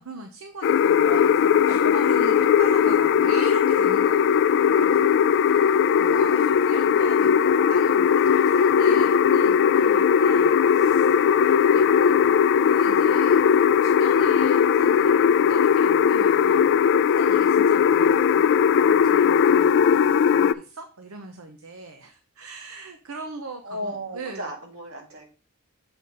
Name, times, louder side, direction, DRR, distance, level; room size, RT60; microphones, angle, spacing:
voice 1, 0.0-1.1 1.4-12.3 12.7-13.5 13.8-16.8 17.1-24.5, right 3 dB, 70° right, 5 dB, 0.8 m, -40 dB
sound 1, 0.6-20.5, left 7 dB, 55° left, 0.3 m, -19 dB
voice 2, 1.0-1.9 3.2-3.3 5.8-6.0 10.4-10.6 17.9-18.2 23.6-25.3, right 1 dB, 90° right, 0 dB, 2.4 m, -37 dB
6.9 x 4.3 x 4.8 m, 0.36 s
head